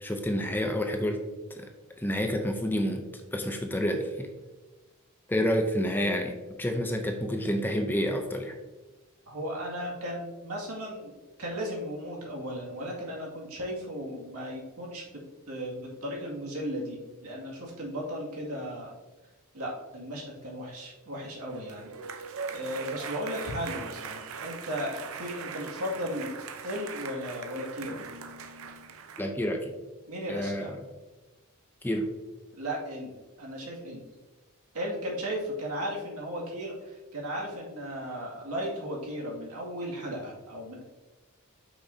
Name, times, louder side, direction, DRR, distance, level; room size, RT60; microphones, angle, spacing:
voice 1, 0.0-1.2 1.5-1.7 2.0-3.0 3.3-4.3 5.3-8.6 29.2-29.7 30.3-30.7 31.8-32.1, equal, 10° left, 4 dB, 0.5 m, -29 dB
voice 2, 9.3-15.0 15.5-18.9 19.5-21.9 22.5-28.0 30.1-30.7 32.5-34.0 34.7-40.8, equal, 85° right, -3 dB, 2.2 m, -36 dB
sound 1, 21.4-29.3, right 5 dB, 65° right, 0.7 m, -41 dB
8.2 x 6.0 x 2.7 m, 1.2 s
head